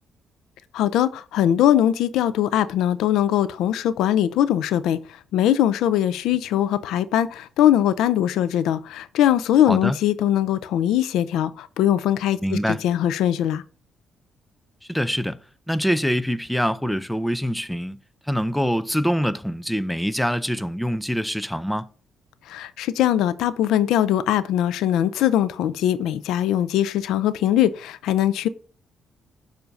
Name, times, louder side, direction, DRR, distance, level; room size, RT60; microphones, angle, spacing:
voice 1, 0.7-13.6 22.5-28.5, left 11 dB, 85° left, 0.4 m, -21 dB
voice 2, 9.7-10.0 12.4-12.8 14.9-15.4 15.7-18.0 18.3-21.9, equal, 5° left, 0.4 m, -24 dB
6.8 x 2.6 x 5.2 m
cardioid pair, 90°, 0 cm